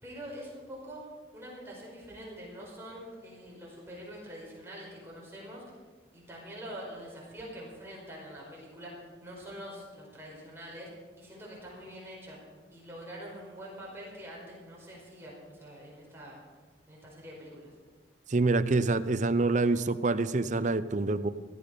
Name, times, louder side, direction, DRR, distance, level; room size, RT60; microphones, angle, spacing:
voice 1, 0.0-1.1 1.3-5.6 6.1-10.9 11.2-12.4 12.7-16.4 16.9-17.7, equal, 15° right, -4 dB, 5.0 m, -45 dB
voice 2, 18.3-21.3, right 3 dB, 40° right, 13 dB, 0.6 m, -26 dB
17.0 x 13.5 x 5.3 m, 1.4 s
head